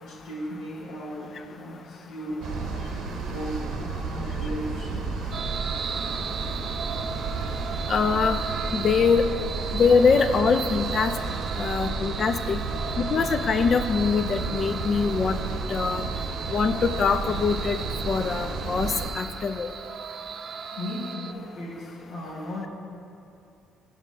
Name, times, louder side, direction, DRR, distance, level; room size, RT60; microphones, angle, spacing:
voice 1, 0.0-2.9 3.3-5.1 20.8-22.7, equal, 75° left, -4 dB, 1.3 m, -36 dB
sound 1, 2.4-19.1, right 4 dB, 70° right, 0.7 m, -32 dB
sound 2, 5.3-21.3, right 7 dB, 55° right, 0.3 m, -36 dB
voice 2, 7.9-8.4 8.7-9.2 9.7-11.1 11.6-12.6 13.0-15.4 15.7-16.0 16.5-17.8 18.1-19.7, left 5 dB, 50° left, 10 dB, 0.4 m, -23 dB
5.4 x 4.8 x 6.3 m, 2.6 s
supercardioid pair, 75°, 0 cm